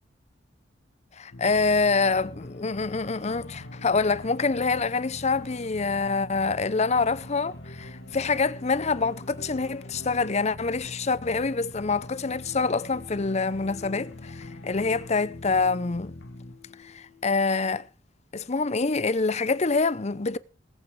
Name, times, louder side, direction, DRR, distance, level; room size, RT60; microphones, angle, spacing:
voice 1, 1.2-16.1 16.8-17.9 18.3-20.4, left 4 dB, 40° left, 0.7 m, -26 dB
sound 1, 1.3-17.8, left 1 dB, 70° left, 1.5 m, -43 dB
19.5 x 8.4 x 4.7 m
head